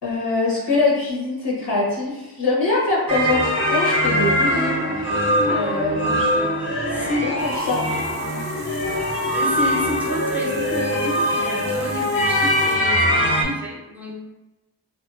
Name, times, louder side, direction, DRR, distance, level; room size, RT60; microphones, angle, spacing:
voice 1, 0.0-6.3 6.9-7.9 8.2-8.4, left 3 dB, 85° left, -5 dB, 0.9 m, -24 dB
sound 1, 3.1-13.4, equal, 30° left, 0.6 m, -22 dB
voice 2, 5.5-5.8 6.9-7.3 9.2-14.1, equal, 5° right, -4 dB, 0.7 m, -30 dB
Water tap faucet, 7.1-12.8, right 4 dB, 65° right, 0.5 m, -42 dB
2.6 x 2.3 x 2.4 m, 1.1 s
wide cardioid pair, 55°, 40 cm